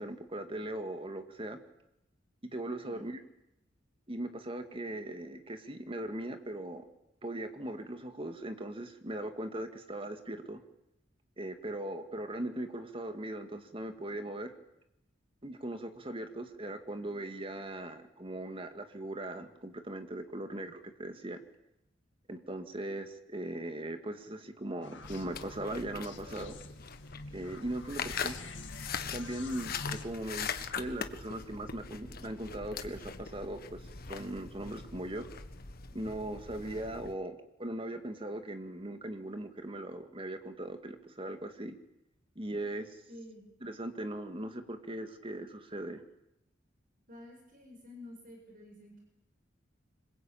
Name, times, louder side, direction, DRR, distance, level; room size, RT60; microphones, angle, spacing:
voice 1, 0.0-1.6 2.5-3.2 4.1-6.8 7.2-10.6 11.4-14.5 15.4-21.4 22.3-26.6 27.3-28.3 29.1-33.8 34.1-35.3 35.9-41.8 42.4-43.0 43.6-46.0, right 1 dB, 30° right, 7 dB, 2.2 m, -39 dB
sound 1, 24.8-30.0, left 3 dB, 70° left, 2.4 m, -46 dB
sound 2, 25.0-37.1, left 6 dB, 55° left, 1.6 m, -42 dB
voice 2, 43.1-43.5 47.1-49.0, left 1 dB, 50° right, 1 dB, 7.4 m, -50 dB
25.5 x 22.5 x 8.9 m, 0.84 s
head